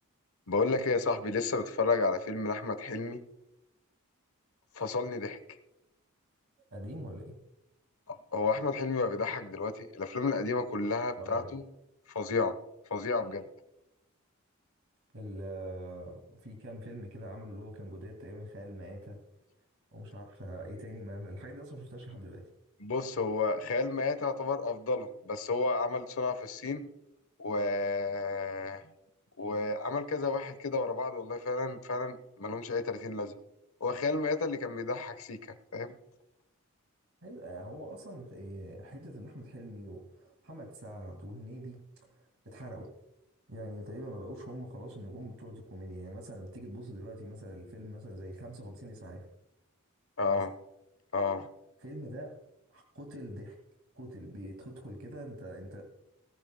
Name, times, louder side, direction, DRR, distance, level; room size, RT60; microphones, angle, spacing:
voice 1, 0.5-3.2 4.7-5.4 8.1-11.6 12.1-12.6 12.9-13.5 22.8-26.8 27.4-28.8 29.4-33.4 33.8-35.4 35.7-35.9 50.2-50.5 51.1-51.5, left 3 dB, 70° left, 10 dB, 1.1 m, -31 dB
voice 2, 6.7-7.4 11.2-11.5 15.1-19.2 19.9-22.4 37.2-42.9 43.5-49.3 50.3-50.5 51.8-52.3 52.7-53.6 53.9-55.8, right 1 dB, 65° right, 2 dB, 2.2 m, -44 dB
20.0 x 14.5 x 2.2 m, 0.86 s
head